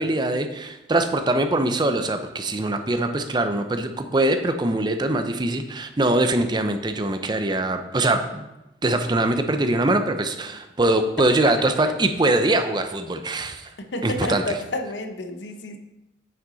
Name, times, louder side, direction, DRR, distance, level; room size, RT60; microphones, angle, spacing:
voice 1, 0.0-8.5 8.8-13.7 14.0-14.4, right 2 dB, 25° right, 7 dB, 0.6 m, -22 dB
voice 2, 13.9-15.8, left 2 dB, 85° left, 6 dB, 0.9 m, -30 dB
9.1 x 5.8 x 4.0 m, 0.94 s
head